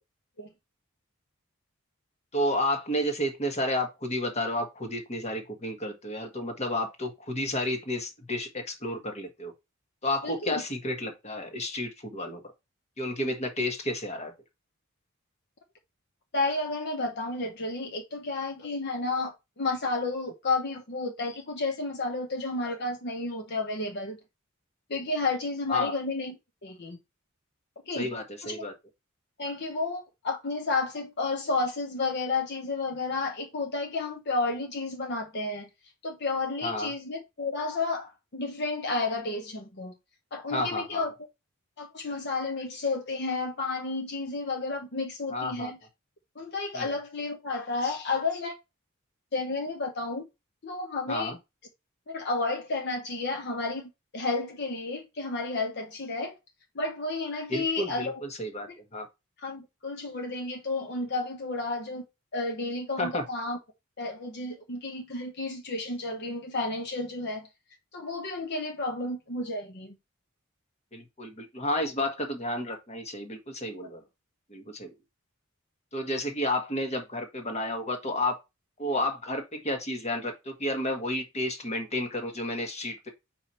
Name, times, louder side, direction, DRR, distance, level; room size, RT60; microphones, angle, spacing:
voice 1, 2.3-9.5 10.0-12.4 13.0-14.3 25.7-25.9 28.0-28.7 36.6-36.9 40.5-41.0 45.3-45.7 46.7-46.9 51.1-51.4 57.5-59.1 63.0-63.2 70.9-74.0 74.5-74.9 75.9-78.4 78.8-83.1, left 1 dB, 30° left, 1.5 m, -31 dB
voice 2, 10.2-10.6 16.3-24.2 24.9-26.4 26.6-27.0 27.9-28.1 28.4-28.6 29.4-35.7 36.0-40.0 40.3-41.1 41.8-45.8 46.4-48.5 49.3-50.3 50.6-51.4 52.1-56.4 56.7-58.2 59.4-62.0 62.3-63.6 64.0-67.5 67.9-69.9, left 3 dB, 55° left, 0.9 m, -31 dB
5.0 x 4.5 x 4.3 m
head